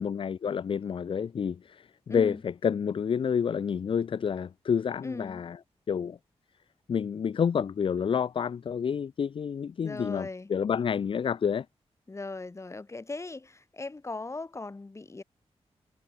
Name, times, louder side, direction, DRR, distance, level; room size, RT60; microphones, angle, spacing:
voice 1, 0.0-5.6 5.9-6.2 6.9-11.7, left 7 dB, 50° left, 0.5 m, -29 dB
voice 2, 2.1-2.4 5.0-5.4 9.8-10.5 12.1-15.2, left 3 dB, 25° left, 2.4 m, -38 dB
wide cardioid pair, 135°, 11 cm